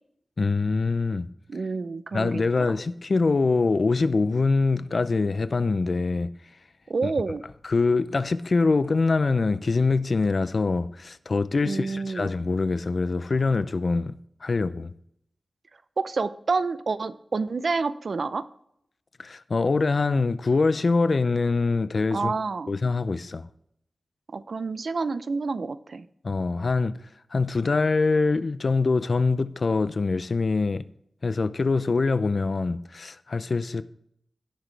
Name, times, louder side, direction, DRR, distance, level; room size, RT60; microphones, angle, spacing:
voice 1, 0.4-1.3 2.1-6.3 7.6-14.1 14.4-14.9 19.2-22.3 22.7-23.5 26.2-27.0 27.3-30.8 31.2-33.8, left 3 dB, 55° left, 0.6 m, -24 dB
voice 2, 1.5-2.4 6.9-7.4 11.6-12.3 16.0-18.5 22.1-22.7 24.3-26.0, right 4 dB, 65° right, 0.6 m, -28 dB
18.0 x 6.1 x 3.3 m
wide cardioid pair, 85°, 0 cm